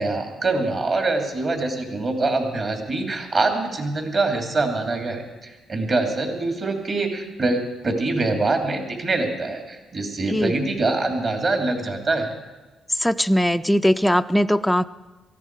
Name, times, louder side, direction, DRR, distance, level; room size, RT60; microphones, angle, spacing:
voice 1, 0.0-12.3, right 3 dB, 40° right, 4 dB, 2.7 m, -24 dB
voice 2, 12.9-14.8, equal, 5° left, 9 dB, 0.4 m, -20 dB
18.0 x 14.5 x 4.7 m, 1.2 s
cardioid pair, 90°, 0 cm